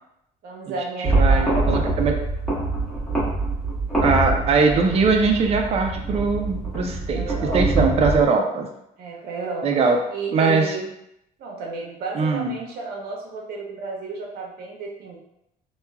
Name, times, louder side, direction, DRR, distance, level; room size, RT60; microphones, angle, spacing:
voice 1, 0.4-1.8 3.9-4.5 7.1-8.0 9.0-10.9 11.4-15.2, right 3 dB, 65° right, -1 dB, 0.8 m, -33 dB
sound 1, 1.0-8.2, right 2 dB, 5° left, 1.1 m, -24 dB
voice 2, 1.1-2.2 4.0-8.7 9.6-10.0 10.3-10.7 12.1-12.5, right 4 dB, 35° right, 3 dB, 0.4 m, -21 dB
3.0 x 2.2 x 2.2 m, 0.80 s
cardioid pair, 110°, 17 cm